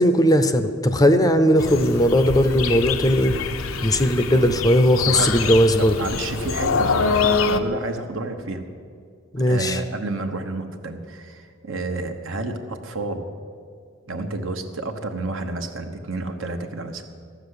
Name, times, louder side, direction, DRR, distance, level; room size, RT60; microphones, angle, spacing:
voice 1, 0.0-3.3 3.8-6.0 9.3-9.8, equal, 20° left, 9 dB, 0.6 m, -18 dB
sound 1, 1.6-7.6, left 5 dB, 80° left, 0.7 m, -25 dB
voice 2, 6.0-8.6 9.5-13.2 14.1-17.0, right 2 dB, 65° right, 6 dB, 1.1 m, -30 dB
13.5 x 7.1 x 9.8 m, 2.2 s
head